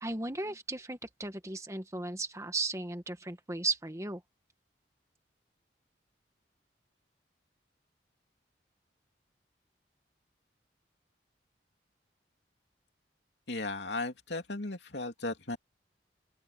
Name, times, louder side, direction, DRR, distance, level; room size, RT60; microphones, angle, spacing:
voice 1, 0.0-4.2, right 3 dB, 15° right, 1.6 m, -36 dB
voice 2, 13.5-15.6, left 2 dB, 70° left, 3.0 m, -36 dB
open air
head